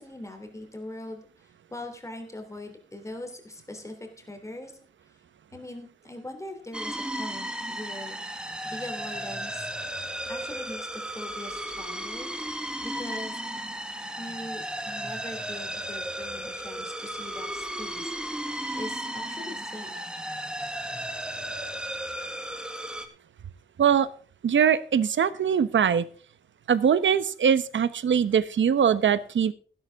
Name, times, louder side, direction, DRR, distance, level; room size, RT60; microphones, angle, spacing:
voice 1, 0.0-4.7 5.1-5.2 5.5-9.7 10.3-13.6 14.2-20.1, left 1 dB, 15° left, 4 dB, 3.3 m, -42 dB
sound 1, 6.7-23.1, right 1 dB, 5° right, 1.7 m, -35 dB
voice 2, 24.4-26.0 26.7-29.5, right 8 dB, 80° right, 14 dB, 1.0 m, -22 dB
16.0 x 11.5 x 3.6 m, 0.41 s
wide cardioid pair, 170°, 19 cm